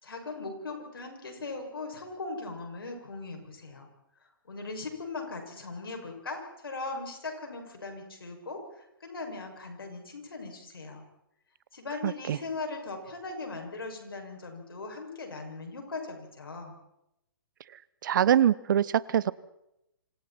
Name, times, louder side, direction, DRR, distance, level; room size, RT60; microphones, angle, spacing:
voice 1, 0.0-3.9 4.4-11.0 11.7-16.7, left 3 dB, 85° left, 3 dB, 6.6 m, -39 dB
voice 2, 12.0-12.4 18.0-19.3, right 10 dB, 60° right, 20 dB, 0.9 m, -24 dB
27.5 x 26.5 x 4.4 m, 0.84 s
hypercardioid pair, 130°, 12 cm